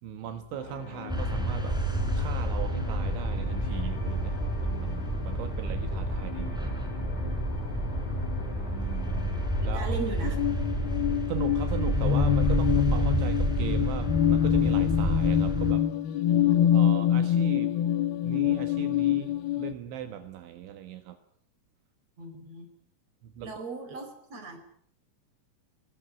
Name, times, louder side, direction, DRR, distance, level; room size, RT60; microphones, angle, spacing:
voice 1, 0.0-1.8 2.1-4.4 4.6-6.7 8.4-10.0 11.3-15.9 16.7-17.7 18.2-21.2 23.2-23.6, right 10 dB, 75° right, 8 dB, 3.7 m, -39 dB
sound 1, 0.5-13.9, left 6 dB, 45° left, 3.8 m, -44 dB
sound 2, 1.1-15.7, right 1 dB, ahead, 5.7 m, -29 dB
voice 2, 9.7-10.4 22.2-22.7 23.4-24.6, right 3 dB, 35° right, 6 dB, 5.7 m, -37 dB
sound 3, 10.2-19.7, left 10 dB, 70° left, 2.4 m, -25 dB
21.5 x 21.0 x 8.2 m, 0.66 s
omnidirectional pair, 5.5 m